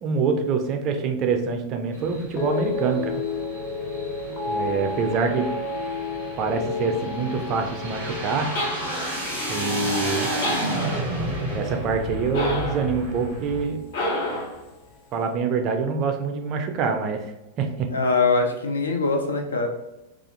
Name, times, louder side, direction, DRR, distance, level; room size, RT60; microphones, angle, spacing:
voice 1, 0.0-3.2 4.5-5.5 6.4-8.5 9.5-10.3 11.5-13.8 15.1-17.9, right 5 dB, 35° right, 5 dB, 0.4 m, -25 dB
sound 1, 1.9-13.6, right 1 dB, 90° left, 1.1 m, -32 dB
sound 2, 2.3-12.7 13.0-13.6, left 4 dB, 25° left, 0.6 m, -32 dB
sound 3, 8.5-9.3 10.4-11.2 12.3-12.9 13.9-14.6, left 1 dB, 55° left, 0.8 m, -29 dB
voice 2, 17.9-19.7, left 3 dB, 70° left, 3 dB, 0.4 m, -22 dB
2.4 x 2.4 x 2.6 m, 0.95 s
figure-of-eight pair, 90°, 0 cm